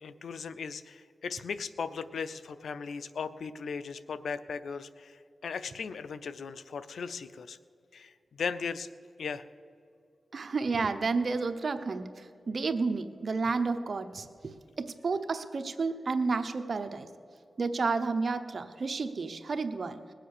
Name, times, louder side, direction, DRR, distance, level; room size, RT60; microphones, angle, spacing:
voice 1, 0.0-7.6 7.9-8.9 9.2-9.4, left 5 dB, 90° left, 14 dB, 0.5 m, -37 dB
voice 2, 10.3-17.1 17.6-20.0, right 4 dB, 65° right, 9 dB, 0.9 m, -31 dB
20.0 x 7.6 x 6.7 m, 2.5 s
cardioid pair, 65°, 0 cm